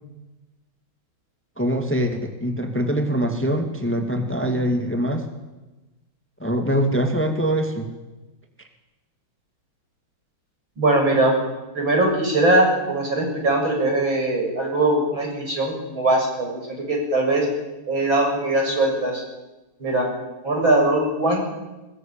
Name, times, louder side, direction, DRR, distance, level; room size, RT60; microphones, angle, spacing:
voice 1, 1.6-5.3 6.4-7.9, equal, 5° left, 5 dB, 2.2 m, -23 dB
voice 2, 10.8-11.4 11.7-17.5 17.9-19.2 19.8-20.1 20.4-21.4, right 2 dB, 65° right, 1 dB, 7.7 m, -21 dB
23.0 x 21.0 x 8.9 m, 1.1 s
omnidirectional pair, 2.3 m